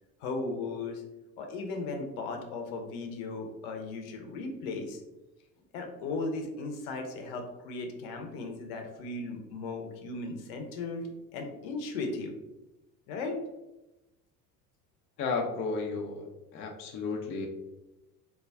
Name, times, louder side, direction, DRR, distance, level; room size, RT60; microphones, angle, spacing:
voice 1, 0.2-1.0 1.4-5.0 5.7-12.3 13.1-13.4, left 3 dB, 60° left, 3 dB, 0.7 m, -36 dB
voice 2, 15.2-17.5, left 4 dB, 30° left, 2 dB, 0.4 m, -33 dB
2.2 x 2.2 x 3.3 m, 1.0 s
figure-of-eight pair, 60°, 48 cm